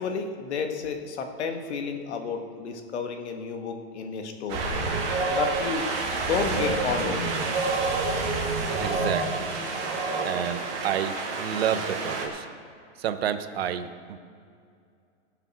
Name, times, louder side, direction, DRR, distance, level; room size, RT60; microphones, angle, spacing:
voice 1, 0.0-4.6 5.3-5.9 6.2-7.4, left 5 dB, 75° left, 5 dB, 1.7 m, -31 dB
Wind, 4.5-12.3, right 3 dB, 30° right, 2.0 m, -28 dB
voice 2, 8.8-9.5 10.2-12.5 13.0-14.2, right 9 dB, 60° right, 10 dB, 0.9 m, -30 dB
18.5 x 6.9 x 6.2 m, 2.3 s
supercardioid pair, 175°, 34 cm